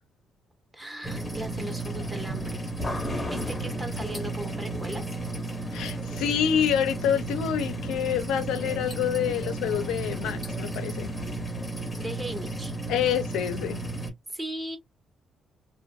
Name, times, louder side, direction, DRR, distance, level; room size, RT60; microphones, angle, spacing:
voice 1, 0.7-2.7 3.3-5.1 11.8-12.7 14.0-14.8, right 1 dB, 15° right, 1.1 m, -38 dB
sound 1, 1.0-14.1, right 2 dB, 15° left, 0.9 m, -33 dB
voice 2, 5.7-11.1 12.9-13.8, left 9 dB, 90° left, 0.5 m, -27 dB
2.5 x 2.5 x 2.3 m
cardioid pair, 90°, 0 cm